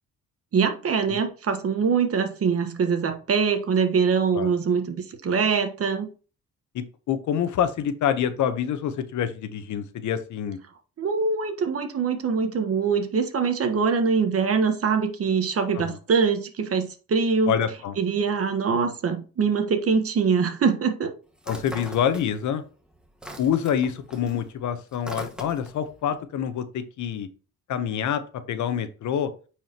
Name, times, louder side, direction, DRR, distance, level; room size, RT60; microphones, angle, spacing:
voice 1, 0.5-6.1 11.0-17.5 18.0-21.1, right 5 dB, 50° right, 1.4 m, -23 dB
voice 2, 6.7-10.6 15.7-16.0 17.5-17.9 21.5-22.6 23.4-27.3 27.7-28.2 28.5-29.3, left 9 dB, 70° left, 1.0 m, -26 dB
sound 1, 21.4-22.6 22.9-25.9, equal, 5° right, 1.7 m, -40 dB
9.0 x 4.8 x 2.9 m
cardioid pair, 90°, 30 cm